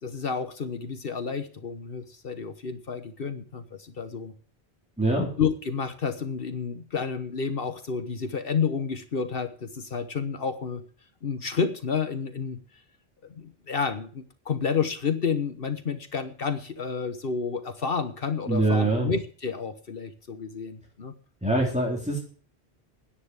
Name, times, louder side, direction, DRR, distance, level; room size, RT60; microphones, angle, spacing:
voice 1, 0.0-4.3 5.4-10.8 11.2-12.6 13.3-21.1, left 5 dB, 60° left, 9 dB, 1.2 m, -30 dB
voice 2, 5.0-5.3 18.5-19.1 21.4-22.2, right 2 dB, 5° right, -2 dB, 3.6 m, -24 dB
10.0 x 9.5 x 8.1 m, 0.43 s
omnidirectional pair, 1.1 m